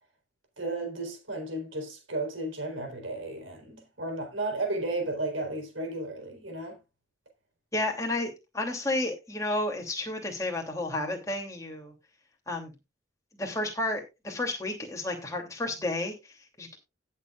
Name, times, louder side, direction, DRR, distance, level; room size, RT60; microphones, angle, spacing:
voice 1, 0.6-6.8, right 2 dB, 75° right, 4.0 m, -34 dB
voice 2, 7.7-11.9 12.5-12.7 13.3-16.8, left 2 dB, 15° left, 2.8 m, -32 dB
17.0 x 7.3 x 2.4 m
head